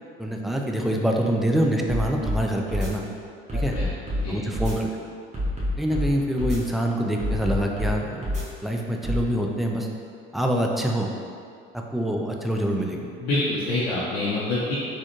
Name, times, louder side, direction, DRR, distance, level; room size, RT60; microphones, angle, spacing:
voice 1, 0.2-3.0 3.5-3.7 4.3-4.9 5.8-8.3 8.6-9.9 10.3-11.1 11.7-13.1, equal, ahead, 1 dB, 0.3 m, -25 dB
sound 1, 1.9-2.4 2.7-2.9 3.5-4.2 4.5-4.7 5.3-6.1 6.4-6.6 7.2-7.9 8.2-8.4 9.0-9.2, equal, 25° right, 1.2 m, -26 dB
voice 2, 3.5-3.9 4.2-4.4 13.2-14.7, left 2 dB, 75° left, -8 dB, 0.7 m, -26 dB
4.1 x 2.3 x 3.0 m, 2.3 s
hypercardioid pair, 65°, 29 cm